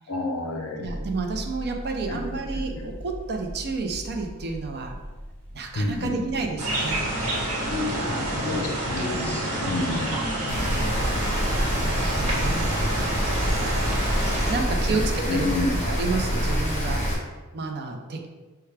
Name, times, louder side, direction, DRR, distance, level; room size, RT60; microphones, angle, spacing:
voice 1, 0.1-0.9 2.1-2.9 5.7-6.3 8.1-10.9 12.4-12.5 13.8-14.0 14.3-14.4 14.7-15.0 15.3-15.8, left 2 dB, 60° left, 1 dB, 0.5 m, -31 dB
sound 1, 0.8-16.5, left 1 dB, 5° left, 0.7 m, -36 dB
voice 2, 0.8-5.0 5.5-7.0 7.9-8.8 9.3-10.0 12.2-12.6 14.5-15.5 15.8-17.0 17.5-18.3, right 4 dB, 50° right, 2 dB, 0.5 m, -31 dB
sound 2, 6.6-14.5, right 1 dB, 70° right, 1.2 m, -28 dB
Rain, 10.5-17.1, equal, 30° left, 0.9 m, -26 dB
5.6 x 2.3 x 3.3 m, 1.3 s
head